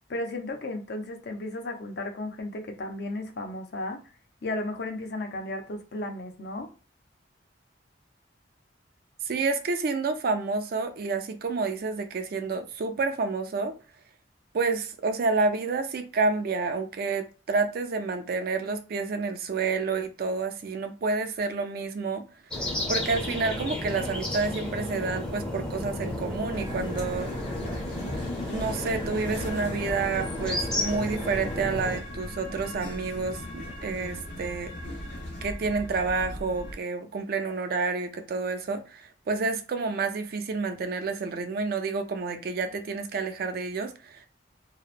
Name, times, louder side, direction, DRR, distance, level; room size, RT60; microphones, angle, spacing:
voice 1, 0.1-4.0 4.4-6.7, left 2 dB, 60° left, 0.5 m, -34 dB
voice 2, 9.2-13.7 14.5-22.3 22.9-27.3 28.5-34.7 35.4-44.3, right 4 dB, 55° right, 0.4 m, -29 dB
sound 1, 22.5-32.0, left 1 dB, 5° left, 0.5 m, -33 dB
sound 2, 26.5-36.8, equal, 80° left, 1.0 m, -38 dB
2.8 x 2.0 x 2.4 m
head